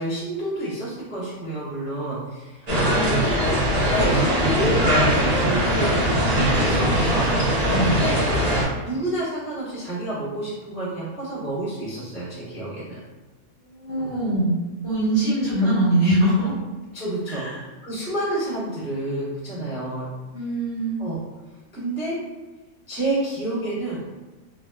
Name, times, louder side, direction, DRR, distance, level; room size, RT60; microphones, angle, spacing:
voice 1, 0.0-7.3 7.8-8.2 8.8-13.0 14.0-14.1 16.9-17.4 17.8-20.1 21.0-21.2 21.7-22.2 22.9-24.0, right 1 dB, 5° right, -12 dB, 0.7 m, -29 dB
sound 1, 2.7-8.6, equal, 50° right, 0.6 m, -20 dB
voice 2, 7.7-8.0 13.6-16.5 17.3-17.6 20.3-21.0, right 1 dB, 50° left, -9 dB, 1.0 m, -23 dB
2.9 x 2.1 x 2.2 m, 1.2 s
omnidirectional pair, 1.5 m